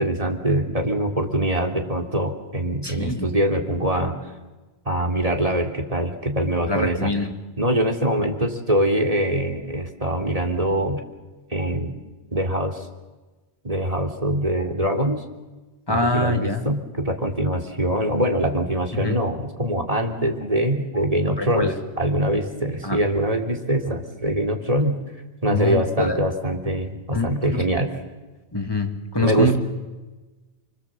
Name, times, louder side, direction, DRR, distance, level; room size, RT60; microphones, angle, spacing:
voice 1, 0.0-4.2 4.9-7.1 7.6-11.0 11.5-12.0 12.3-12.9 13.6-15.2 15.9-21.7 22.0-24.9 25.4-27.9 29.2-29.6, right 1 dB, 35° right, 3 dB, 3.4 m, -23 dB
voice 2, 2.8-3.3 6.7-7.3 15.9-16.7 18.9-19.2 21.4-21.7 22.8-23.0 25.5-26.2 27.1-27.8 28.5-29.6, left 1 dB, 20° left, 5 dB, 2.8 m, -24 dB
30.0 x 25.0 x 7.8 m, 1.2 s
omnidirectional pair, 1.1 m